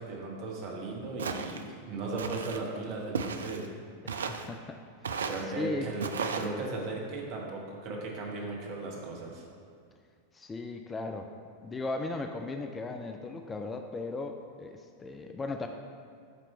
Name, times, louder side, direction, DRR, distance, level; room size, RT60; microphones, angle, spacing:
voice 1, 0.0-3.7 5.2-9.4, right 3 dB, 45° right, -1 dB, 1.2 m, -37 dB
Walk footsteps, 1.2-1.6 2.2-2.6 3.1-3.7 4.1-4.5 5.0-5.5 6.0-6.5, right 5 dB, 65° right, 0.3 m, -34 dB
voice 2, 4.0-5.3 5.6-5.9 10.3-11.3 11.6-15.7, left 3 dB, 15° left, 5 dB, 0.3 m, -37 dB
8.8 x 3.0 x 4.4 m, 2.2 s
figure-of-eight pair, 90°, 0 cm